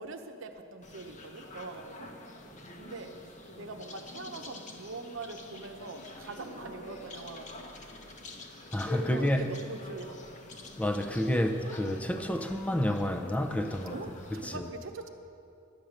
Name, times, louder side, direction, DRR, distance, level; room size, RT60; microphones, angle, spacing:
voice 1, 0.0-2.1 2.8-3.1 3.6-7.7 8.9-10.3 13.9-15.1, right 3 dB, 65° right, 0.9 m, -43 dB
sound 1, 0.8-14.6, left 2 dB, 35° left, 1.0 m, -46 dB
voice 2, 8.7-9.5 10.8-14.0 14.3-14.7, equal, 5° left, 0.7 m, -29 dB
11.5 x 8.9 x 6.5 m
head